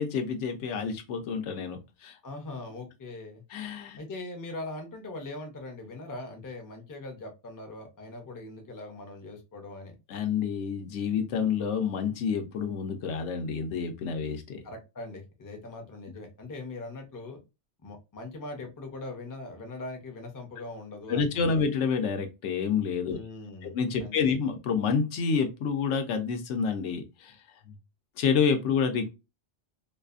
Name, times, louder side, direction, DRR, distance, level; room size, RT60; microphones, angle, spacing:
voice 1, 0.0-2.2 3.5-4.0 10.1-14.6 21.1-23.2 23.6-27.3 27.7-27.8 28.2-29.1, left 6 dB, 85° left, 7 dB, 0.9 m, -28 dB
voice 2, 2.2-3.4 4.0-10.0 14.6-17.4 17.8-21.6 23.1-24.4, left 2 dB, 25° left, 4 dB, 0.4 m, -41 dB
2.6 x 2.3 x 2.4 m, 0.27 s
omnidirectional pair, 1.2 m